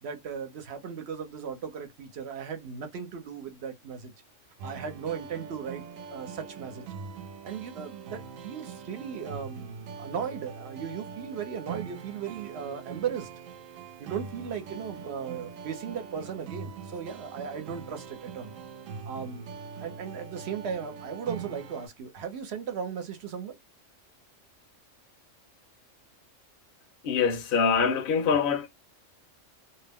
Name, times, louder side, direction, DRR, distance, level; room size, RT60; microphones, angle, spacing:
voice 1, 0.0-4.1 4.6-5.8 6.1-6.9 7.4-13.3 14.0-18.5 19.1-19.5 19.8-23.6, right 7 dB, 60° right, 1.0 m, -37 dB
sound 1, 4.6-21.9, right 6 dB, 85° right, 1.0 m, -42 dB
voice 2, 27.0-28.7, left 6 dB, 55° left, 0.7 m, -24 dB
2.5 x 2.1 x 3.4 m
omnidirectional pair, 1.3 m